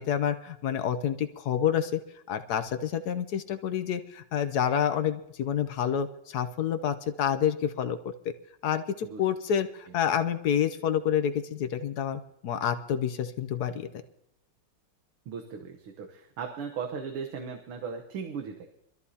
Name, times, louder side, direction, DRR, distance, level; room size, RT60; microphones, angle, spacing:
voice 1, 0.0-2.0 2.3-8.0 8.6-13.9, left 9 dB, 65° left, 9 dB, 1.0 m, -28 dB
voice 2, 15.3-18.7, right 6 dB, 90° right, 3 dB, 2.0 m, -37 dB
24.5 x 13.5 x 2.8 m, 0.74 s
omnidirectional pair, 2.3 m